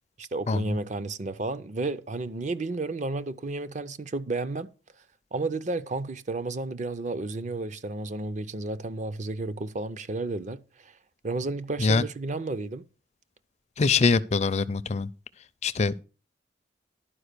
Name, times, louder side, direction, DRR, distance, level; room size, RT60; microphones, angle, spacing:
voice 1, 0.2-4.7 5.3-10.9 11.2-12.8, right 3 dB, 40° right, 0.5 m, -32 dB
voice 2, 13.8-15.1 15.6-16.0, left 4 dB, 35° left, 0.4 m, -23 dB
11.5 x 5.0 x 6.6 m
head